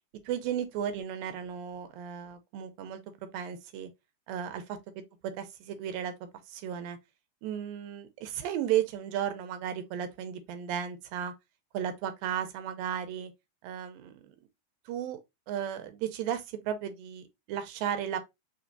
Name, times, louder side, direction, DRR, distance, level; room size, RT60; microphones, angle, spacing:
voice 1, 0.3-3.0 3.3-3.9 4.3-4.6 5.2-6.1 6.5-7.0 7.4-11.3 11.7-13.3 13.6-14.4 14.9-15.2 15.5-18.2, right 9 dB, 80° right, 2.4 m, -34 dB
6.2 x 2.8 x 2.7 m
omnidirectional pair, 4.2 m